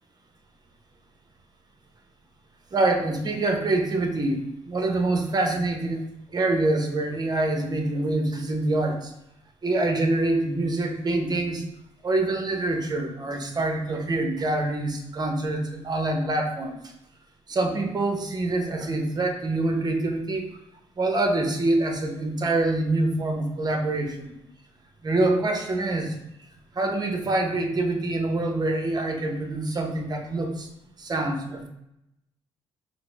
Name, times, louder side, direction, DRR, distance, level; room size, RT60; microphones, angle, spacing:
voice 1, 2.7-6.0 6.3-9.1 9.6-11.6 12.0-16.9 17.5-20.6 21.0-24.4 25.0-26.2 26.7-30.7 31.0-31.7, right 2 dB, 35° right, 4 dB, 0.8 m, -25 dB
3.9 x 2.0 x 3.3 m, 0.84 s
supercardioid pair, 60°, 12 cm